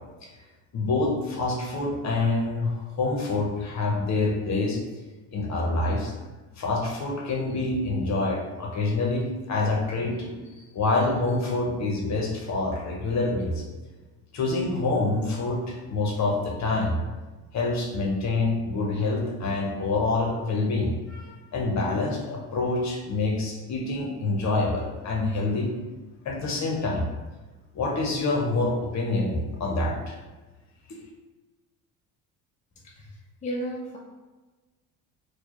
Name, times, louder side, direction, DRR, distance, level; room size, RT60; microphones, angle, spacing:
voice 1, 0.7-4.8 5.3-6.1 6.6-10.5 10.7-13.6 14.3-17.0 17.5-25.7 26.2-27.1 27.7-30.2 30.9-31.0, left 2 dB, 45° left, -1 dB, 1.0 m, -26 dB
voice 2, 32.8-34.0, right 1 dB, 20° left, -3 dB, 0.7 m, -34 dB
4.3 x 2.4 x 3.0 m, 1.2 s
supercardioid pair, 85°, 38 cm